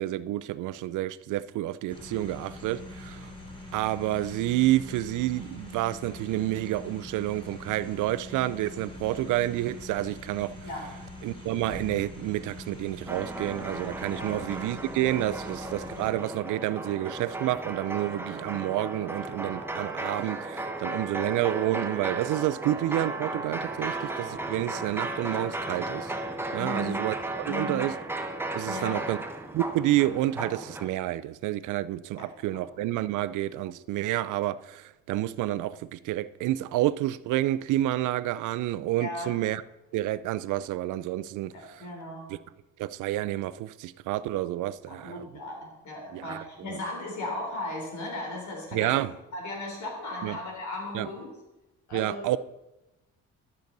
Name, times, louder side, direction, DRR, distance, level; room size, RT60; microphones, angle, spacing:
voice 1, 0.0-3.3 3.7-10.5 11.2-26.1 26.5-27.9 28.5-29.2 29.5-39.6 39.9-41.8 42.8-45.3 46.1-46.4 46.7-46.8 48.7-49.1 50.2-50.4 50.9-51.1 51.9-52.4, right 15 dB, 85° right, 0.5 m, -29 dB
sound 1, 1.9-16.1, left 1 dB, 15° left, 2.6 m, -43 dB
sound 2, 13.1-30.9, right 2 dB, 10° right, 1.0 m, -35 dB
voice 2, 26.6-27.1 27.5-27.8 28.7-29.0 32.2-32.6 39.0-39.3 41.5-42.3 44.9-49.1 49.3-51.3 51.9-52.2, left 2 dB, 70° left, 3.6 m, -36 dB
13.0 x 6.9 x 4.0 m
cardioid pair, 90°, 30 cm